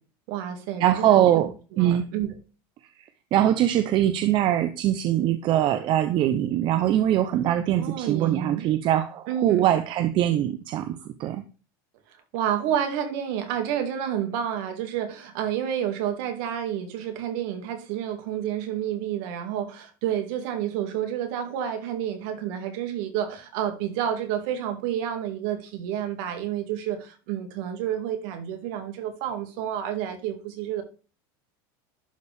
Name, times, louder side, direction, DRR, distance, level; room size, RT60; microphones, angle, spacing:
voice 1, 0.3-2.3 7.8-8.7 9.3-9.7 12.3-30.8, right 10 dB, 70° right, 2.1 m, -30 dB
voice 2, 0.8-2.0 3.3-11.4, right 12 dB, 45° right, 0.7 m, -22 dB
11.5 x 4.1 x 3.4 m
supercardioid pair, 120°, 11 cm